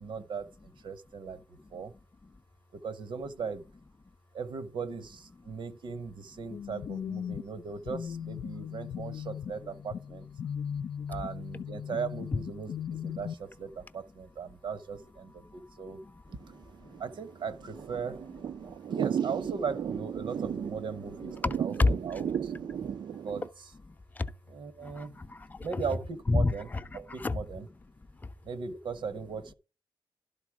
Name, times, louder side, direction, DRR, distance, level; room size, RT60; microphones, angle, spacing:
voice 1, 0.0-1.4 1.7-1.9 2.7-3.7 4.3-10.3 11.1-16.0 17.0-18.3 18.9-22.5 23.2-23.7 24.5-25.2 25.6-27.7 28.4-29.5, right 5 dB, 80° right, 1.1 m, -38 dB
sound 1, 6.5-13.3, left 8 dB, 80° left, 0.5 m, -38 dB
voice 2, 10.4-10.8 15.4-15.6 15.9-16.2 16.8-17.0 18.6-18.7 21.4-22.2 22.6-22.8 23.9-24.3 24.8-25.8 26.3-27.4 28.2-28.3, left 3 dB, 20° left, 0.6 m, -31 dB
Thunder / Rain, 16.4-23.5, right 8 dB, 65° right, 0.4 m, -35 dB
12.0 x 4.1 x 4.7 m
wide cardioid pair, 150°, 8 cm